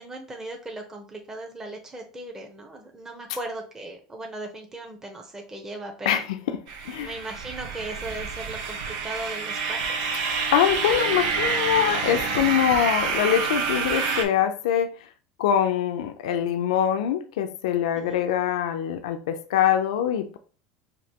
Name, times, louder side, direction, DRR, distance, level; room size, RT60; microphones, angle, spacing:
voice 1, 0.0-6.2 7.0-10.1 17.9-18.3, right 2 dB, 15° right, 2 dB, 0.8 m, -38 dB
voice 2, 6.0-6.6 6.9-7.1 10.5-14.9 15.4-20.4, left 10 dB, 85° left, 8 dB, 0.4 m, -24 dB
sound 1, 6.7-14.2, right 5 dB, 80° right, 0.7 m, -28 dB
5.1 x 2.6 x 2.9 m, 0.39 s
supercardioid pair, 115°, 3 cm